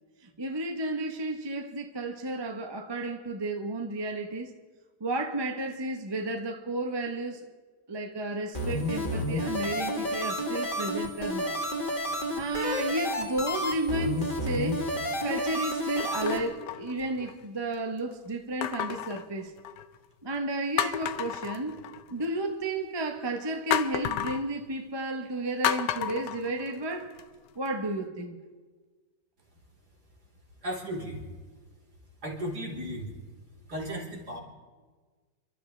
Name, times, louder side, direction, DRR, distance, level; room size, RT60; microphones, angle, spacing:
voice 1, 0.4-4.5 5.0-7.4 7.9-11.6 12.3-14.9 15.2-19.5 20.2-21.8 22.1-27.1 27.6-28.4, right 2 dB, 20° right, 0.9 m, -32 dB
sound 1, 8.5-16.4, left 1 dB, 30° left, 1.9 m, -31 dB
sound 2, 13.1-13.5 14.2-14.3 16.0-17.5 18.6-20.0 20.4-20.5 20.8-22.3 23.7-24.5 25.6-27.2 27.7-27.8, left 10 dB, 85° left, 1.3 m, -32 dB
voice 2, 30.6-31.2 32.2-33.1 33.7-34.4, equal, 65° right, 4.4 m, -35 dB
29.5 x 13.0 x 3.3 m
omnidirectional pair, 1.9 m